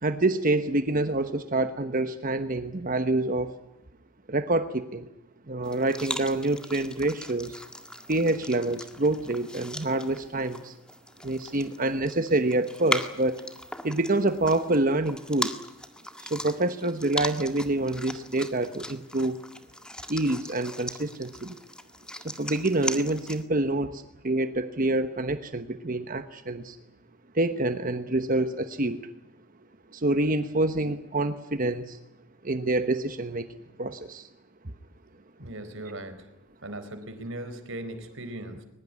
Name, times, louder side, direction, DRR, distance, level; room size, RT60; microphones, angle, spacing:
voice 1, 0.0-3.5 4.3-5.1 5.5-7.6 8.1-10.7 11.2-13.4 13.8-15.5 16.2-19.4 20.1-21.6 22.2-26.8 27.3-29.0 29.9-32.0 32.4-33.5 33.8-34.3, right 2 dB, 40° right, 10 dB, 1.1 m, -27 dB
sound 1, 5.6-23.4, left 1 dB, 5° left, 1.8 m, -39 dB
voice 2, 35.4-36.3 36.6-38.6, right 1 dB, 65° right, 9 dB, 4.3 m, -38 dB
22.5 x 21.0 x 9.6 m, 0.91 s
head